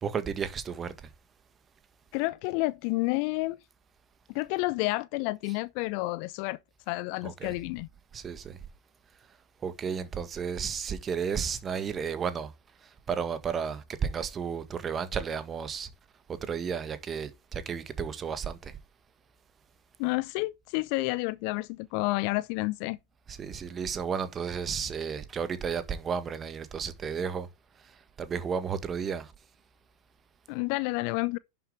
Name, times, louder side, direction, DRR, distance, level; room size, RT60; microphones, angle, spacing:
voice 1, 0.0-0.9 7.2-7.5 8.1-8.6 9.6-12.5 13.1-15.9 16.5-18.7 23.3-27.5 28.2-29.3, right 6 dB, 20° right, 1.7 m, -33 dB
voice 2, 2.1-3.6 4.3-6.6 6.9-7.9 20.0-23.0 30.5-31.4, left 22 dB, 45° left, 0.5 m, -30 dB
11.0 x 7.5 x 3.5 m
figure-of-eight pair, 90°, 0 cm